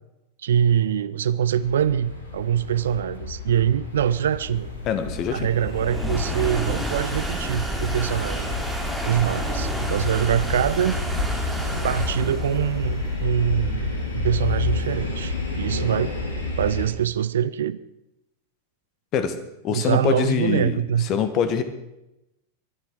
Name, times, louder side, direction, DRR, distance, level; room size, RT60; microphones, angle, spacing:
voice 1, 0.4-4.7 5.3-8.5 9.0-11.0 11.8-16.1 16.6-17.8 19.7-21.1, right 9 dB, 60° right, 0.5 m, -24 dB
sound 1, 1.6-16.9, left 3 dB, 70° left, 3.3 m, -30 dB
sound 2, 3.1-16.2, right 1 dB, ahead, 3.1 m, -31 dB
voice 2, 4.9-5.5 19.1-19.4 19.6-20.8 21.1-21.6, left 7 dB, 35° left, 1.7 m, -24 dB
22.0 x 11.5 x 4.8 m
figure-of-eight pair, 90°, 0 cm